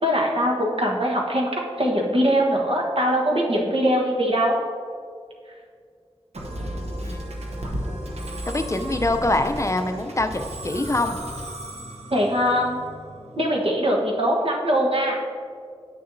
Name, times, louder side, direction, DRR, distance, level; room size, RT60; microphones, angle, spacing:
voice 1, 0.0-4.6 12.1-12.8 13.4-15.2, equal, 60° right, -2 dB, 1.2 m, -22 dB
Musical instrument, 6.3-13.7, right 1 dB, 85° right, 0.9 m, -34 dB
voice 2, 8.5-11.2, left 2 dB, 30° left, 7 dB, 0.5 m, -24 dB
8.7 x 6.6 x 2.7 m, 2.1 s
wide cardioid pair, 45°, 11 cm